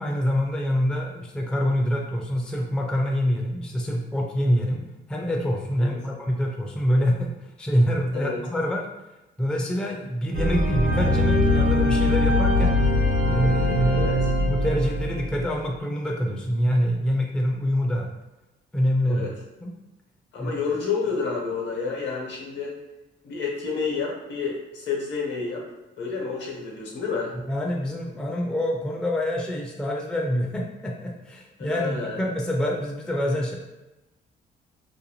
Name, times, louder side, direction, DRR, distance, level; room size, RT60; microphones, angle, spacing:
voice 1, 0.0-4.8 5.1-7.3 7.6-8.9 9.4-12.8 13.2-14.1 14.4-18.1 18.7-19.3 19.6-19.7 20.4-20.5 27.5-33.5, equal, 5° left, 0 dB, 0.4 m, -25 dB
sound 1, 10.3-15.5, left 1 dB, 70° right, 1.1 m, -22 dB
voice 2, 13.9-14.3 19.0-19.3 20.3-22.7 23.2-25.6 26.0-27.3 31.6-32.2, left 5 dB, 65° left, -2 dB, 0.9 m, -29 dB
2.6 x 2.2 x 2.8 m, 0.99 s
cardioid pair, 90°, 20 cm